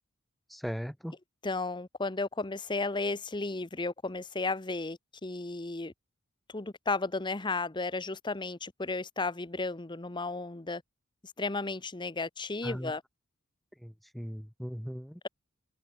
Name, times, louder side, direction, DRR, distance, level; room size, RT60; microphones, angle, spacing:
voice 1, 0.5-1.1 12.6-12.9 13.8-15.2, equal, ahead, 0.5 m, -38 dB
voice 2, 1.4-5.9 6.5-10.8 11.4-13.0, left 3 dB, 20° left, 0.9 m, -34 dB
open air
head